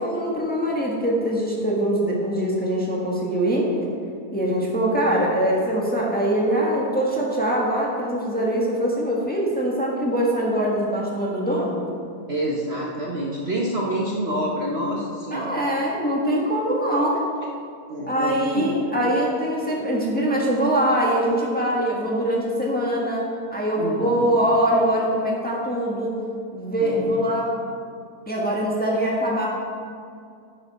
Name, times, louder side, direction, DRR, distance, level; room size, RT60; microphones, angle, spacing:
voice 1, 0.0-3.7 4.3-11.8 15.3-17.2 18.1-23.2 23.5-26.1 26.5-27.5 28.3-29.5, right 1 dB, 5° left, -4 dB, 1.5 m, -23 dB
voice 2, 12.3-15.6 17.9-18.7 23.8-24.3 26.8-27.1, right 1 dB, 45° right, -3 dB, 1.2 m, -27 dB
10.5 x 8.8 x 4.3 m, 2.4 s
omnidirectional pair, 1.7 m